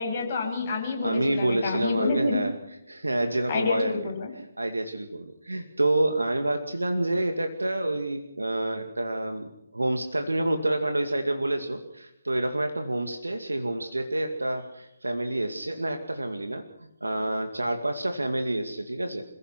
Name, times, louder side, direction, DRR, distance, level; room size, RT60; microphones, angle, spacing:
voice 1, 0.0-2.4 3.5-4.3, left 3 dB, 35° left, 1 dB, 7.6 m, -28 dB
voice 2, 1.0-2.5 2.9-4.1 4.6-16.6 17.0-19.3, right 1 dB, 80° right, 6 dB, 2.3 m, -28 dB
28.5 x 16.0 x 6.2 m, 0.85 s
figure-of-eight pair, 140°, 0 cm